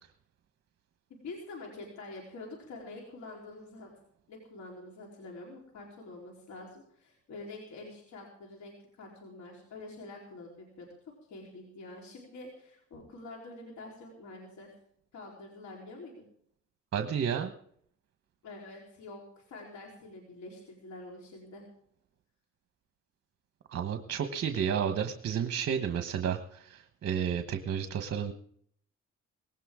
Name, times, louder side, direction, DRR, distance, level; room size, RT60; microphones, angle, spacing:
voice 1, 1.1-3.9 4.3-10.9 11.3-14.7 15.1-16.2 18.4-21.6, left 2 dB, 70° left, -1 dB, 4.0 m, -46 dB
voice 2, 16.9-17.5 23.7-28.3, right 8 dB, 55° right, 6 dB, 1.2 m, -31 dB
19.0 x 17.0 x 3.7 m, 0.65 s
cardioid pair, 90°, 30 cm